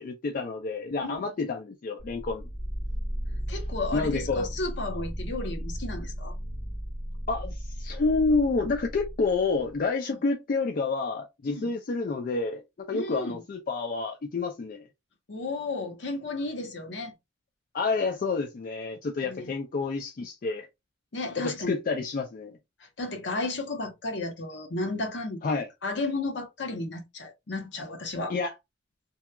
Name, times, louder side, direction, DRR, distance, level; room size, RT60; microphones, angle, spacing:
voice 1, 0.0-2.5 3.9-4.5 7.3-14.8 17.7-20.7 21.4-22.6 25.4-25.7 28.3-28.5, left 4 dB, 45° left, 0.3 m, -29 dB
sound 1, 2.0-9.8, equal, 90° left, 1.0 m, -35 dB
voice 2, 3.5-6.3 11.5-11.7 12.9-13.4 15.3-17.1 19.2-19.5 21.1-21.8 23.0-25.4 25.8-28.3, left 2 dB, 70° left, 0.7 m, -33 dB
2.8 x 2.2 x 2.2 m
head